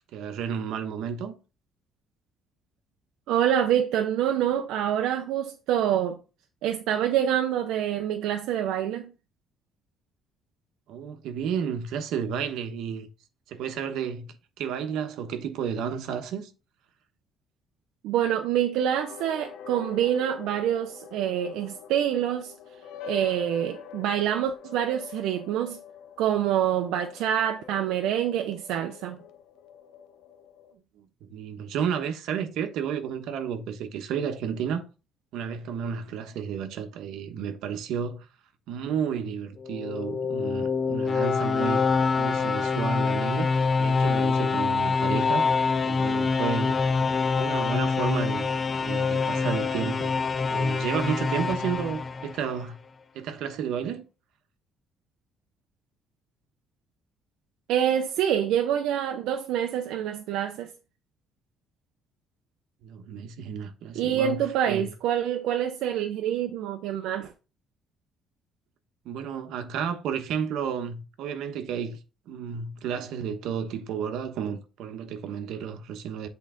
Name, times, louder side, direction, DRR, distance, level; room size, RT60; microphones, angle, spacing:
voice 1, 0.1-1.4 10.9-13.1 13.5-16.5 30.7-34.9 35.3-38.3 38.7-41.9 42.2-47.1 47.4-48.5 48.8-52.8 53.1-54.0 62.8-64.9 69.0-72.0 72.3-76.3, right 7 dB, 75° right, 1.1 m, -32 dB
voice 2, 3.3-6.2 6.6-9.1 18.0-22.5 23.0-25.8 26.2-29.2 57.7-60.7 63.9-67.3, right 10 dB, 90° right, 0.6 m, -26 dB
sound 1, 18.8-30.7, left 7 dB, 75° left, 0.7 m, -45 dB
sound 2, 39.6-52.6, left 4 dB, 25° left, 0.4 m, -25 dB
8.4 x 3.8 x 3.7 m
cardioid pair, 165°, 0 cm